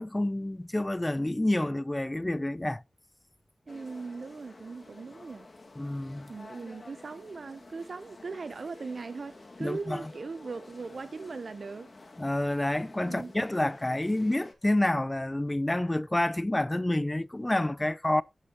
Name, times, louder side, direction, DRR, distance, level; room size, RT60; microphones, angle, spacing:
voice 1, 0.0-2.8 5.8-6.3 9.6-10.0 12.2-18.2, left 1 dB, 20° left, 0.5 m, -28 dB
sound 1, 3.7-14.5, left 2 dB, 50° left, 2.3 m, -51 dB
voice 2, 3.7-5.5 6.3-11.9 13.0-13.3, right 4 dB, 70° right, 0.6 m, -39 dB
9.9 x 7.2 x 2.8 m
cardioid pair, 50°, 0 cm